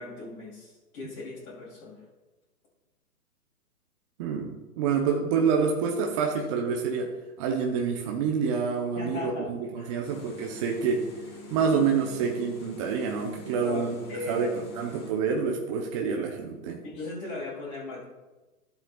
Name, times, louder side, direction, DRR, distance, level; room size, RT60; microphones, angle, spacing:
voice 1, 0.0-2.0 9.0-9.5 9.8-9.9 13.6-14.7 16.8-18.0, left 2 dB, 35° left, -8 dB, 3.1 m, -38 dB
voice 2, 4.2-7.1 7.4-11.1 11.5-14.0 14.3-14.5 14.8-16.8, right 6 dB, 20° right, 1 dB, 0.8 m, -27 dB
sound 1, 10.0-15.1, left 2 dB, 70° left, 2.9 m, -45 dB
14.0 x 7.5 x 2.3 m, 1.1 s
hypercardioid pair, 140°, 47 cm